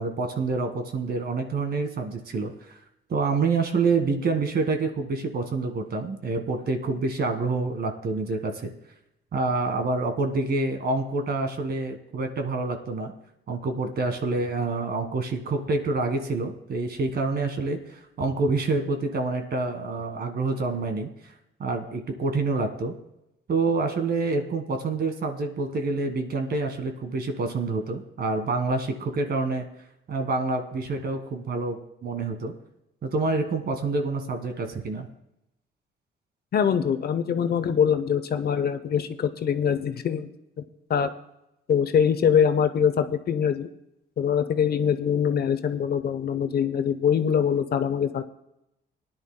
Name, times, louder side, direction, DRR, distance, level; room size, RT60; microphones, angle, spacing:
voice 1, 0.0-2.5 3.1-8.7 9.3-13.1 13.5-17.8 18.2-21.3 21.6-22.9 23.5-29.7 30.1-32.5 33.0-35.1, right 3 dB, 55° right, 6 dB, 1.6 m, -27 dB
voice 2, 36.5-40.3 40.9-41.1 41.7-43.7 44.2-48.2, left 7 dB, 55° left, 10 dB, 0.8 m, -23 dB
19.0 x 10.5 x 2.2 m, 0.83 s
cardioid pair, 90°, 20 cm